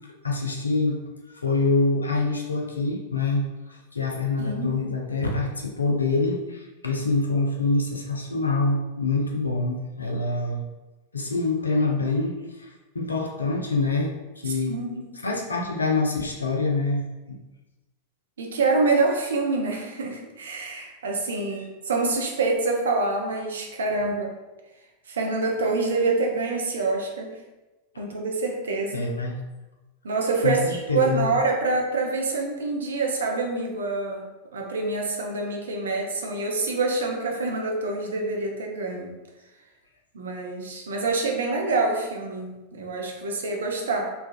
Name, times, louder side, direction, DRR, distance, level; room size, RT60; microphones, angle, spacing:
voice 1, 0.2-1.0 1.3-10.6 11.1-14.7 15.2-17.4 28.9-29.4 30.4-31.3, left 3 dB, 75° left, 1 dB, 0.4 m, -26 dB
voice 2, 4.4-4.8 14.5-15.1 18.4-24.3 25.1-27.4 28.0-29.1 30.0-34.2 34.5-39.1 40.1-44.1, right 3 dB, 65° right, 1 dB, 0.5 m, -26 dB
3.2 x 2.3 x 2.3 m, 1.1 s
figure-of-eight pair, 90°, 0 cm